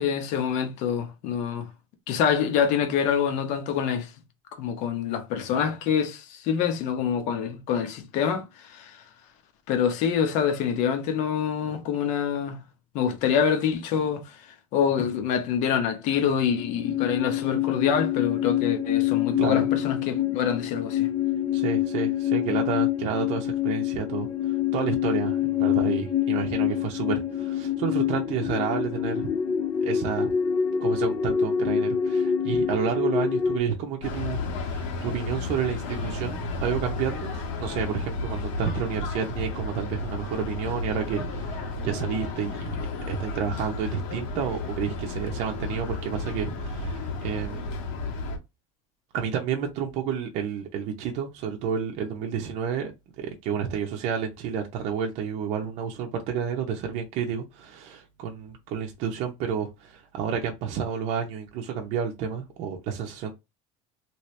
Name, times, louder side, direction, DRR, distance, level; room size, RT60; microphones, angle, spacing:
voice 1, 0.0-1.7 2.1-4.1 4.5-9.0 9.7-12.6 12.9-14.5 14.7-21.1, left 7 dB, 50° left, 0.9 m, -26 dB
sound 1, 16.5-33.6, left 9 dB, 25° left, 0.4 m, -26 dB
voice 2, 21.5-29.3 29.8-30.3 30.8-37.3 37.6-47.7 49.1-52.9 53.2-63.3, right 7 dB, 45° right, 0.7 m, -30 dB
sound 2, 34.0-48.4, left 3 dB, 85° left, 1.5 m, -32 dB
3.0 x 2.9 x 3.2 m
cardioid pair, 170°, 16 cm